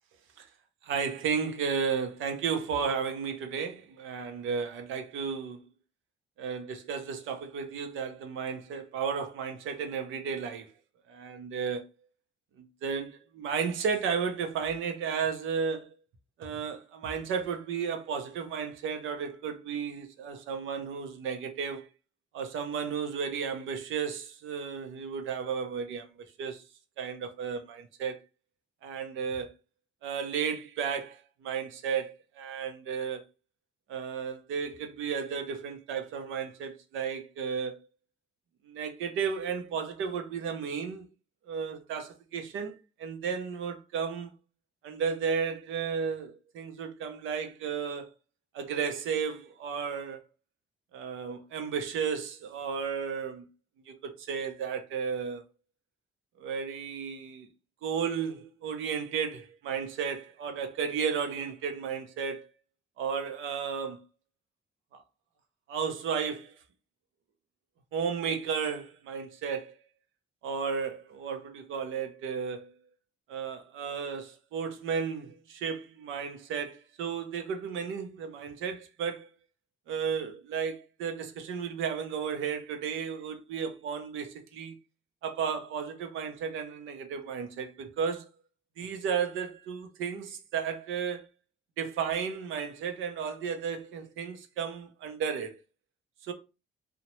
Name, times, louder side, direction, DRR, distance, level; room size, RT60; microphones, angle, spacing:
voice 1, 0.8-5.6 6.4-10.7 11.1-11.8 12.6-15.9 16.4-21.9 22.3-26.1 26.4-26.6 27.0-28.2 28.8-29.5 30.0-33.2 33.9-37.8 38.7-41.1 41.5-44.3 44.8-48.1 48.5-50.2 50.9-53.5 53.9-55.4 56.4-57.5 57.8-62.5 63.0-64.0 65.7-66.5 67.9-69.8 70.4-72.7 73.3-79.3 79.9-84.7 85.2-88.3 88.8-91.3 91.8-95.6 96.2-96.3, right 6 dB, 80° right, 0.6 m, -33 dB
2.8 x 2.1 x 3.0 m
cardioid pair, 90°, 20 cm